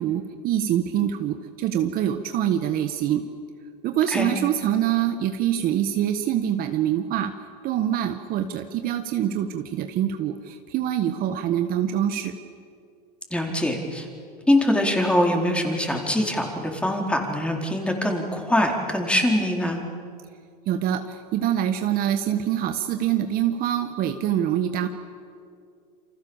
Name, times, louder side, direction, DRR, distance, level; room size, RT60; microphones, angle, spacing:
voice 1, 0.0-3.2 3.8-7.3 7.6-12.3 20.7-24.9, right 10 dB, 45° right, 7 dB, 1.5 m, -25 dB
voice 2, 13.3-14.1 14.5-19.8, left 1 dB, 5° left, 1 dB, 4.4 m, -23 dB
28.5 x 26.0 x 7.3 m, 2.3 s
supercardioid pair, 115°, 21 cm